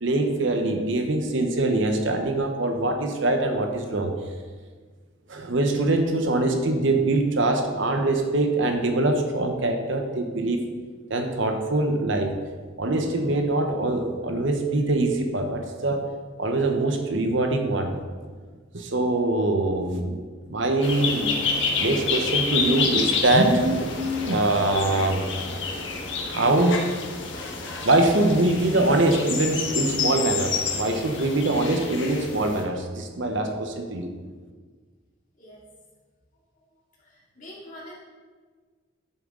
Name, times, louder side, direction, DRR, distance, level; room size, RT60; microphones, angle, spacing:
voice 1, 0.0-4.1 5.3-10.7 11.1-12.3 12.8-16.1 16.4-17.9 18.7-20.2 20.5-21.3 21.8-25.2 26.3-26.9 27.8-34.1, right 2 dB, 70° right, 5 dB, 0.9 m, -23 dB
sound 1, 20.8-32.6, left 4 dB, 65° left, 1.3 m, -29 dB
voice 2, 36.7-37.9, left 1 dB, 40° left, -6 dB, 2.6 m, -45 dB
10.0 x 7.1 x 3.8 m, 1.5 s
head